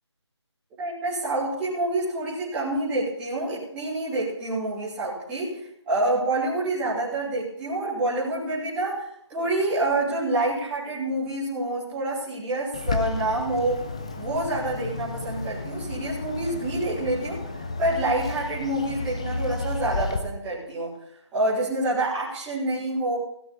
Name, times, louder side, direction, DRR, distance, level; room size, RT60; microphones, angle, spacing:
voice 1, 0.8-13.8 14.2-17.4 17.8-20.9 21.3-23.2, right 2 dB, 5° right, -9 dB, 3.1 m, -27 dB
Bird, 12.7-20.2, left 3 dB, 15° left, 0.5 m, -32 dB
16.0 x 7.9 x 6.9 m, 0.72 s
figure-of-eight pair, 170°, 15 cm